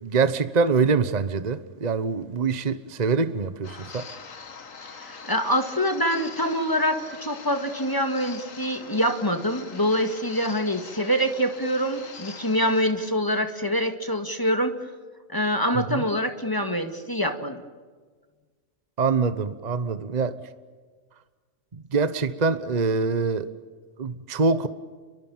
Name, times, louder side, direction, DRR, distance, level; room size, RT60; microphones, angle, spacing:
voice 1, 0.0-4.1 15.7-16.0 19.0-20.4 21.9-23.5 24.0-24.7, right 4 dB, 35° right, 12 dB, 1.1 m, -24 dB
sound 1, 3.6-12.8, left 5 dB, 75° left, 2.0 m, -43 dB
voice 2, 5.0-14.8 15.3-17.6, equal, 15° left, 6 dB, 1.9 m, -25 dB
30.0 x 23.5 x 7.4 m, 1.5 s
omnidirectional pair, 1.4 m